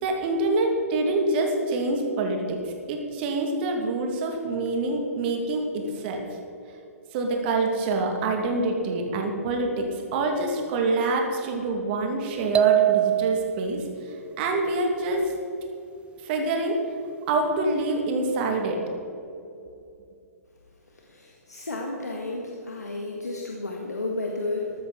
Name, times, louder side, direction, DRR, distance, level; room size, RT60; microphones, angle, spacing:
voice 1, 0.0-2.6 2.9-6.2 7.1-15.3 16.2-16.8 17.3-18.8, right 2 dB, 40° right, 2 dB, 2.5 m, -26 dB
sound 1, 12.5-13.7, right 13 dB, 15° right, 0.3 m, -21 dB
voice 2, 21.1-24.7, left 2 dB, 80° left, 0 dB, 1.7 m, -32 dB
14.0 x 13.0 x 4.2 m, 2.7 s
figure-of-eight pair, 120°, 9 cm